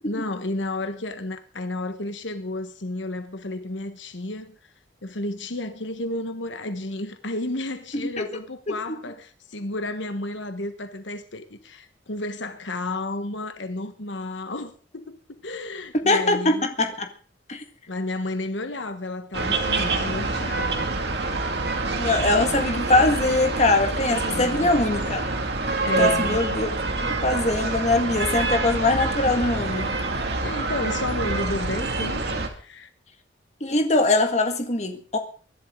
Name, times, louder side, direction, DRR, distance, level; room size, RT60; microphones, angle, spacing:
voice 1, 0.0-4.6 5.0-16.7 17.9-20.9 24.3-24.7 25.8-26.4 30.4-32.2 32.5-32.9, left 2 dB, 85° left, 1.4 m, -32 dB
voice 2, 8.7-9.0 16.0-17.1 17.5-17.6 22.0-25.2 26.0-26.7 27.0-29.9 33.6-35.2, left 2 dB, 40° left, 1.9 m, -22 dB
sound 1, 19.3-32.5, right 3 dB, 60° right, 2.3 m, -26 dB
23.5 x 11.5 x 3.8 m
head